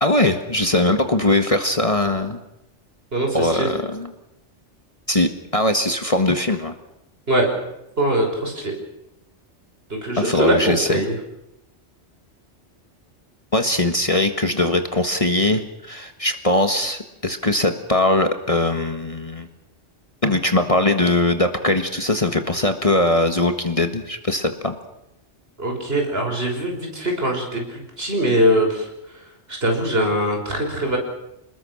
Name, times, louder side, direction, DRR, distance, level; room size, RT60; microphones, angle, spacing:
voice 1, 0.0-2.4 3.3-4.1 5.1-6.7 10.2-11.1 13.5-19.5 20.2-24.7, left 2 dB, 30° left, 6 dB, 1.7 m, -20 dB
voice 2, 3.1-3.7 7.3-7.5 8.0-8.7 9.9-11.1 25.6-28.9 29.5-31.0, equal, 55° right, 2 dB, 6.1 m, -22 dB
28.0 x 20.5 x 6.4 m, 0.88 s
omnidirectional pair, 1.2 m